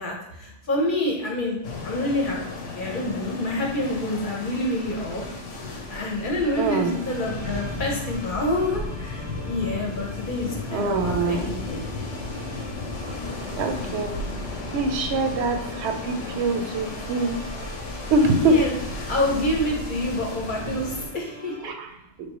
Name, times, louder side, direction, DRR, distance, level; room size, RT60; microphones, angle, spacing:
voice 1, 0.0-2.4 2.7-5.2 5.9-11.8 18.1-18.7 19.1-21.5, left 1 dB, 50° left, -1 dB, 0.8 m, -27 dB
sound 1, 1.6-21.1, left 2 dB, 90° left, 1.1 m, -34 dB
sound 2, 6.4-21.7, right 1 dB, 35° right, 0.5 m, -45 dB
voice 2, 6.6-6.9 10.7-11.6 13.6-14.2 14.7-17.4 18.1-18.6 21.6-21.9, right 3 dB, 70° right, 5 dB, 0.8 m, -24 dB
3.7 x 3.4 x 3.0 m, 0.80 s
omnidirectional pair, 1.2 m